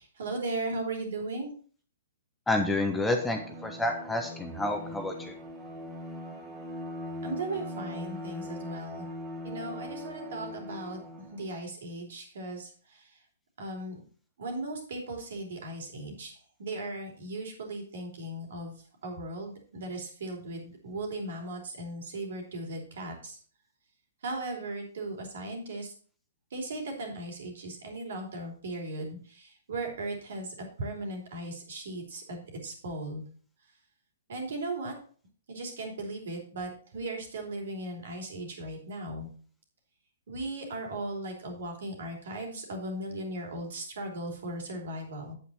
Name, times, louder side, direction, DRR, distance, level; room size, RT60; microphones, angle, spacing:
voice 1, 0.0-1.5 7.2-9.0 9.4-11.0 11.3-13.1 13.6-14.0 14.4-16.3 16.6-23.4 24.2-25.9 26.5-33.2 34.3-35.0 35.5-39.3 40.3-45.4, right 2 dB, 60° right, 2 dB, 3.2 m, -37 dB
voice 2, 2.5-5.3, left 2 dB, 5° left, 4 dB, 1.2 m, -29 dB
Bowed string instrument, 3.0-11.5, left 1 dB, 15° right, 2.5 m, -41 dB
8.5 x 8.4 x 4.2 m, 0.43 s
figure-of-eight pair, 120°, 0 cm